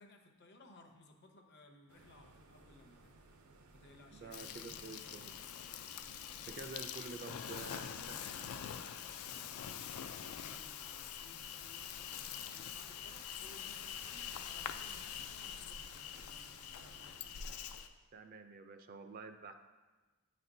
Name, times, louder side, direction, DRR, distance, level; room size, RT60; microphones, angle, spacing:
voice 1, 0.0-3.1 3.7-5.3 7.3-9.5 10.1-17.3, left 2 dB, 50° left, 3 dB, 0.6 m, -60 dB
sound 1, 1.9-17.6, right 2 dB, 85° right, 0.6 m, -61 dB
voice 2, 4.1-5.3 6.5-8.0 18.1-19.5, right 3 dB, 40° right, 7 dB, 0.3 m, -49 dB
Insect, 4.3-17.9, left 9 dB, 85° left, 0.3 m, -45 dB
8.8 x 4.2 x 2.6 m, 1.3 s
head